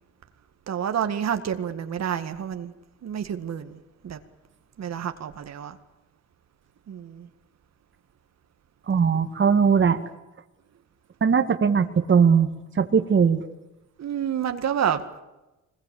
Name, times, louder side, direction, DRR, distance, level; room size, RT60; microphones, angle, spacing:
voice 1, 0.7-2.7 3.0-3.8 4.0-4.2 4.8-5.8 6.9-7.3 14.0-15.0, right 9 dB, 60° right, 8 dB, 2.0 m, -28 dB
voice 2, 8.9-10.0 11.2-12.5 12.8-13.4, right 6 dB, 40° right, 7 dB, 1.9 m, -19 dB
25.0 x 21.5 x 8.6 m, 1.0 s
cardioid pair, 90°, 30 cm